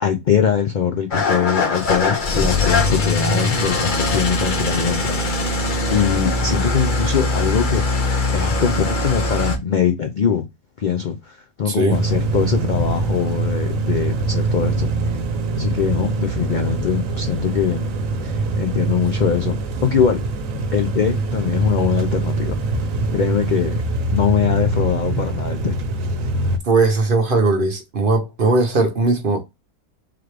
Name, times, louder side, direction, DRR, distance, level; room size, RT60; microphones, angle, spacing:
voice 1, 0.0-5.2 5.9-7.8 8.3-10.4 10.8-14.9 15.5-17.9 18.2-19.6 19.8-20.3 20.7-22.5 23.1-23.8 24.1-25.8, left 7 dB, 85° left, 0.4 m, -22 dB
Engine starting / Idling, 1.1-9.6, left 2 dB, 40° left, 0.8 m, -21 dB
voice 2, 11.7-12.0 26.6-29.4, right 3 dB, 45° right, 0.8 m, -18 dB
sound 1, 11.9-26.6, right 2 dB, 70° right, 1.1 m, -23 dB
3.9 x 3.0 x 3.2 m
omnidirectional pair, 1.5 m